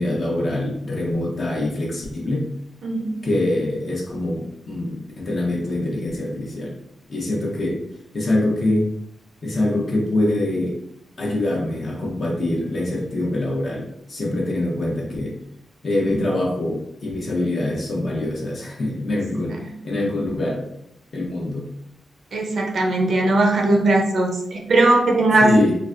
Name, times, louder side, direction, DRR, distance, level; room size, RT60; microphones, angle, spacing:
voice 1, 0.0-2.5 3.2-6.8 7.1-7.8 8.1-8.9 9.4-10.8 11.2-15.4 15.8-20.6 21.1-21.7 25.4-25.8, left 1 dB, 40° left, -3 dB, 0.9 m, -24 dB
voice 2, 2.8-3.2 22.3-25.5, right 2 dB, 55° right, 1 dB, 0.5 m, -18 dB
3.9 x 2.2 x 2.5 m, 0.78 s
wide cardioid pair, 165°, 0 cm